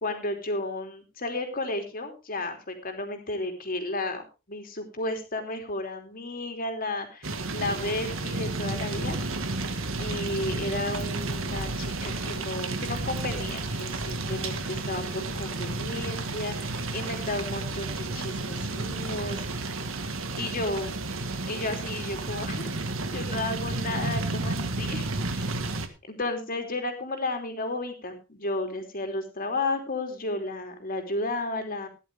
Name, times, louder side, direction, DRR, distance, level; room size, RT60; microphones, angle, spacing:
voice 1, 0.0-9.2 10.0-19.4 20.4-20.9 21.5-22.7 23.1-25.1 25.3-25.5 26.1-31.9, left 2 dB, 45° left, 5 dB, 3.1 m, -33 dB
sound 1, 7.2-25.9, right 2 dB, 90° right, 1.6 m, -32 dB
16.0 x 11.0 x 3.4 m, 0.29 s
head